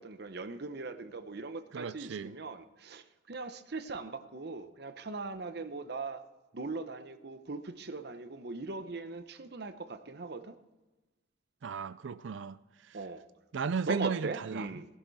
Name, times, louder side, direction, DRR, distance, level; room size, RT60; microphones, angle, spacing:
voice 1, 0.0-6.2 6.5-10.6 12.9-13.2 13.9-14.9, right 3 dB, 55° right, 0.8 m, -40 dB
voice 2, 1.7-2.3 11.6-13.0 13.5-14.7, right 5 dB, 70° right, 0.4 m, -35 dB
17.5 x 11.0 x 4.1 m
head